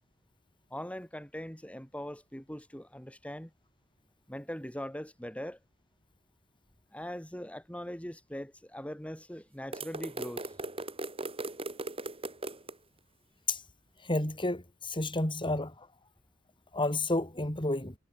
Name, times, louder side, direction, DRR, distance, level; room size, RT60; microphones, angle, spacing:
voice 1, 0.7-3.5 4.3-5.6 6.9-10.5, equal, 5° left, 3.9 m, -41 dB
sound 1, 9.7-12.7, right 2 dB, 30° right, 5.8 m, -38 dB
voice 2, 14.0-15.9 16.7-17.9, left 2 dB, 25° left, 3.9 m, -31 dB
head